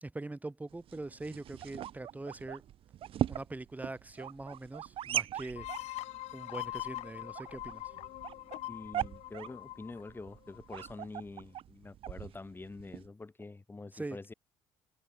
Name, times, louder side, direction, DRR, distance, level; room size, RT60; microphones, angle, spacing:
voice 1, 0.0-2.6 3.3-6.0 6.3-7.8 13.9-14.2, right 2 dB, 15° right, 1.1 m, -43 dB
sound 1, 0.7-13.1, right 11 dB, 50° right, 0.4 m, -40 dB
sound 2, 5.6-11.0, left 17 dB, 65° left, 0.8 m, -43 dB
voice 2, 8.7-14.3, left 3 dB, 20° left, 0.9 m, -46 dB
hypercardioid pair, 50°, 12 cm